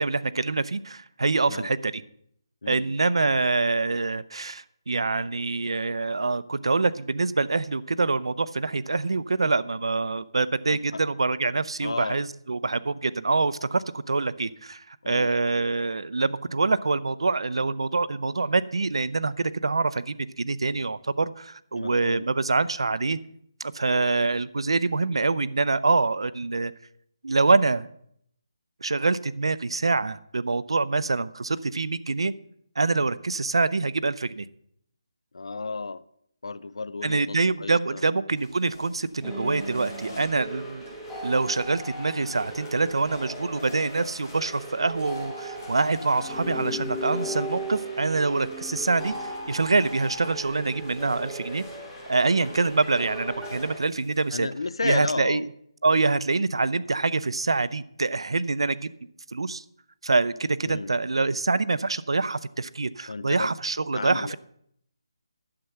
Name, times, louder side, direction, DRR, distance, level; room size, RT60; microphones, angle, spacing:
voice 1, 0.0-2.0 2.7-23.2 23.6-26.7 27.2-27.9 28.8-32.3 32.8-34.5 37.0-40.8 41.2-51.6 52.1-54.5 54.8-55.4 55.8-58.8 59.3-59.6 60.0-64.4, right 3 dB, 85° right, 0.6 m, -25 dB
voice 2, 2.6-2.9 10.7-11.0 11.8-12.2 15.0-15.3 21.7-22.3 35.3-36.0 36.4-38.0 54.3-55.4 60.6-60.9 63.1-63.5 63.9-64.4, left 3 dB, 80° left, 0.6 m, -33 dB
sound 1, 38.3-54.3, left 2 dB, 35° left, 3.5 m, -51 dB
sound 2, 39.2-53.8, right 1 dB, ahead, 1.4 m, -37 dB
11.5 x 7.7 x 5.8 m
hypercardioid pair, 175°, 3 cm